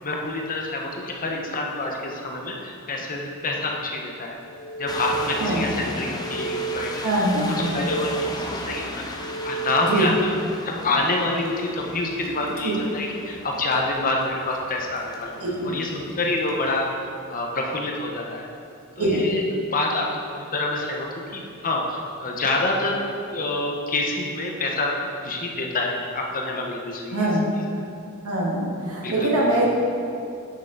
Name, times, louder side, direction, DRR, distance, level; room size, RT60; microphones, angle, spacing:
voice 1, 0.0-4.4 4.8-7.0 7.7-9.0 9.4-10.4 10.6-15.3 15.6-16.9 17.3-18.5 19.0-23.0 23.3-24.9 25.2-27.3 29.0-29.5, left 2 dB, 40° left, 0 dB, 1.0 m, -27 dB
sound 1, 4.4-5.5 5.9-7.0 7.4-8.5 9.0-10.1, right 6 dB, 70° left, 1.0 m, -33 dB
sound 2, 4.9-16.9, left 2 dB, 20° left, 0.6 m, -37 dB
voice 2, 7.0-7.8 9.8-10.1 12.6-12.7 15.4-15.7 19.0-19.3 27.1-27.4 28.2-29.7, right 1 dB, 80° right, -4 dB, 1.9 m, -23 dB
9.6 x 6.5 x 4.0 m, 2.6 s
head